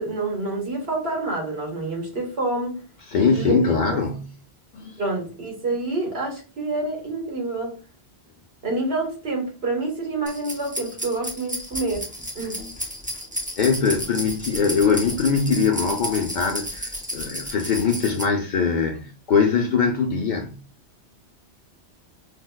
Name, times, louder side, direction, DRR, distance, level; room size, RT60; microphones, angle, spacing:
voice 1, 0.0-2.7 3.1-3.6 3.9-4.0 5.0-7.7 8.6-12.1 12.3-12.6, right 2 dB, 70° right, 1.5 m, -27 dB
voice 2, 3.1-4.3 4.7-4.9 13.6-20.6, left 5 dB, 55° left, 0.6 m, -22 dB
sound 1, 10.3-18.2, equal, 10° right, 0.4 m, -32 dB
5.1 x 2.1 x 2.2 m
omnidirectional pair, 1.1 m